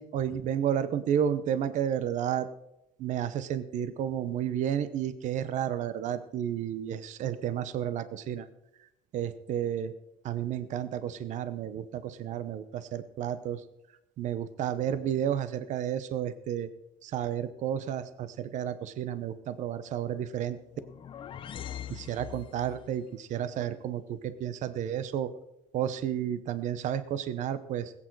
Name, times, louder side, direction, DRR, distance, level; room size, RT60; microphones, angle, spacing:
voice 1, 0.0-2.5 3.0-8.5 9.1-9.9 10.2-13.6 14.2-16.7 17.0-20.6 21.9-25.3 25.7-27.9, right 9 dB, 55° right, 13 dB, 0.8 m, -31 dB
sound 1, 20.6-22.9, left 10 dB, 35° left, 0.5 m, -42 dB
20.0 x 8.8 x 4.6 m, 0.87 s
cardioid pair, 175°, 15 cm